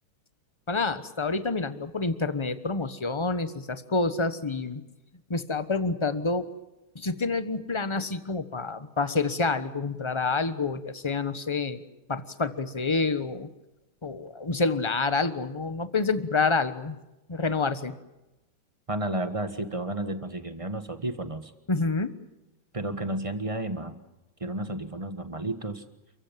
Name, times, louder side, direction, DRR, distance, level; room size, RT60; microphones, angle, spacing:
voice 1, 0.7-4.8 5.3-6.5 6.9-11.8 12.1-13.5 14.0-17.0 17.3-18.0 21.7-22.1, left 3 dB, 20° left, 12 dB, 0.8 m, -28 dB
voice 2, 18.9-21.5 22.7-24.0 24.4-25.8, right 1 dB, 20° right, 9 dB, 1.4 m, -32 dB
29.0 x 15.5 x 9.2 m, 0.96 s
omnidirectional pair, 2.2 m